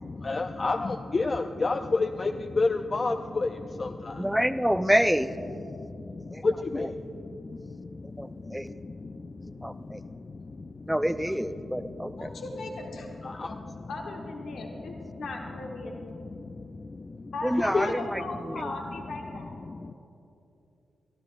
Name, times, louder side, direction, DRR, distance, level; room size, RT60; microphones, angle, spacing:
voice 1, 0.0-4.3 5.7-10.9 11.8-12.4 13.2-13.9 14.5-15.0 16.0-17.3 17.7-17.9 19.4-19.9, left 3 dB, 45° left, 5 dB, 0.5 m, -32 dB
voice 2, 4.2-5.3 6.3-6.5 8.2-8.7 9.6-10.0 10.9-12.3 17.4-18.7, equal, 5° right, 11 dB, 0.6 m, -27 dB
voice 3, 12.2-13.1 13.5-13.6 13.9-16.0 17.3-19.5, left 2 dB, 80° left, 0 dB, 1.3 m, -37 dB
23.5 x 13.5 x 2.5 m, 2.8 s
supercardioid pair, 45°, 0 cm